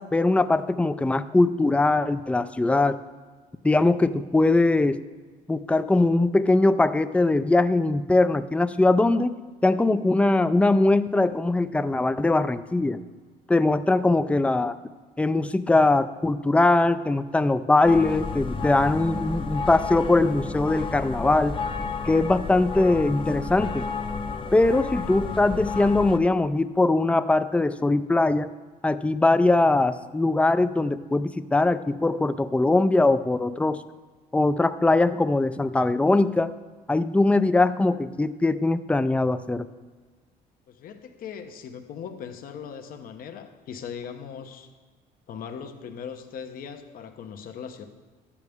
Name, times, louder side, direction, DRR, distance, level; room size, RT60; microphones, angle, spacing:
voice 1, 0.0-3.0 3.6-5.0 5.5-9.4 9.6-13.0 13.5-14.8 15.2-21.6 22.1-23.9 24.5-28.5 28.8-33.8 34.3-36.5 36.9-39.7, left 2 dB, 5° left, 12 dB, 0.4 m, -21 dB
sound 1, 17.8-26.2, left 4 dB, 30° left, 0.8 m, -32 dB
voice 2, 40.7-44.7 45.3-47.9, left 7 dB, 60° left, 7 dB, 1.0 m, -39 dB
11.5 x 8.3 x 3.5 m, 1.4 s
cardioid pair, 110°, 17 cm